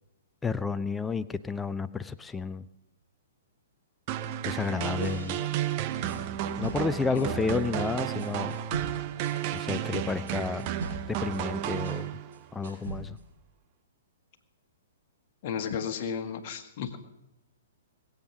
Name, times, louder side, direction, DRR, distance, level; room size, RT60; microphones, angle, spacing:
voice 1, 0.4-2.7 4.4-5.4 6.6-8.6 9.5-10.7 11.1-12.1 12.5-13.2, left 4 dB, 10° left, 13 dB, 0.5 m, -31 dB
sound 1, 4.1-12.4, right 11 dB, 35° right, 0.7 m, -32 dB
sound 2, 5.0-7.6 8.2-12.1 12.3-13.3, right 3 dB, 55° right, 5.7 m, -41 dB
voice 2, 15.4-17.0, left 7 dB, 40° left, 5 dB, 1.6 m, -33 dB
21.0 x 8.1 x 6.1 m, 0.91 s
figure-of-eight pair, 115°, 0 cm